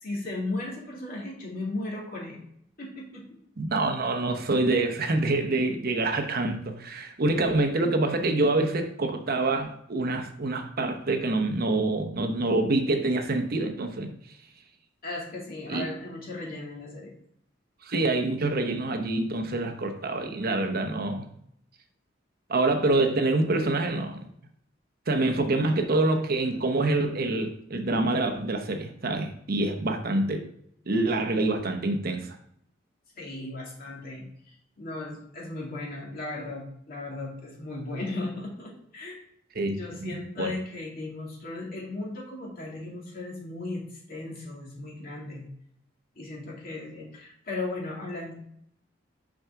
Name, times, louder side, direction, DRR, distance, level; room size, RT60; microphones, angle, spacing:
voice 1, 0.0-2.4 2.8-3.3 15.0-17.1 25.7-25.8 33.2-39.2 39.8-45.4 46.2-48.3, left 2 dB, 50° left, -3 dB, 2.5 m, -36 dB
voice 2, 3.6-14.1 15.7-15.9 17.8-21.2 22.5-24.2 25.1-30.4 30.9-32.4 39.6-40.5, right 2 dB, 55° right, 5 dB, 0.9 m, -26 dB
6.2 x 5.8 x 3.6 m, 0.69 s
head